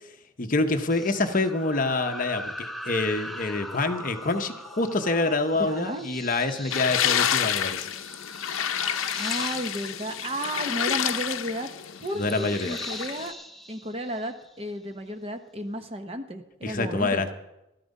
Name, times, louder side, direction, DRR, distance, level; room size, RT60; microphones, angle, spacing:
voice 1, 0.4-7.9 12.2-12.8 16.6-17.3, left 3 dB, 40° left, 7 dB, 0.9 m, -26 dB
sound 1, 0.9-14.8, left 1 dB, ahead, 0.4 m, -41 dB
voice 2, 5.6-6.1 6.9-7.0 9.1-11.7 12.0-13.3 13.7-17.3, right 1 dB, 25° right, 7 dB, 0.9 m, -33 dB
sound 2, 6.7-13.3, left 9 dB, 75° left, 0.6 m, -29 dB
13.0 x 12.0 x 5.3 m, 0.92 s
head